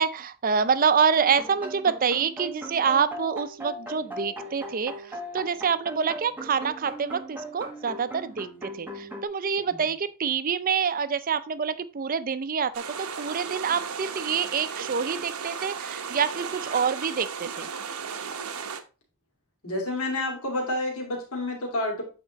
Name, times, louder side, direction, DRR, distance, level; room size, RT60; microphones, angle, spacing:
voice 1, 0.0-4.9 5.3-8.5 8.8-17.7, right 6 dB, 40° right, 0.5 m, -26 dB
sound 1, 1.1-9.3, equal, 10° right, 1.1 m, -39 dB
sound 2, 12.7-18.8, right 6 dB, 85° right, 0.9 m, -35 dB
voice 2, 19.6-22.0, left 1 dB, 80° left, 2.6 m, -29 dB
8.1 x 4.3 x 4.0 m
head